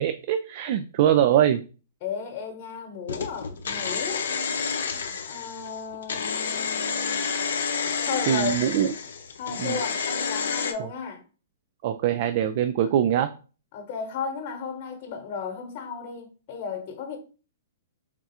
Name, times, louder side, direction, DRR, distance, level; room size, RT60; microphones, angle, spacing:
voice 1, 0.0-1.6 8.3-8.9 9.6-9.8 11.8-13.3, right 10 dB, 50° right, 0.3 m, -23 dB
voice 2, 2.0-4.2 5.3-7.3 8.0-8.6 9.4-11.2 13.7-17.2, left 6 dB, 45° left, 1.0 m, -34 dB
sound 1, 3.1-10.7, left 6 dB, 75° left, 0.6 m, -29 dB
3.6 x 2.4 x 4.1 m
hypercardioid pair, 125°, 0 cm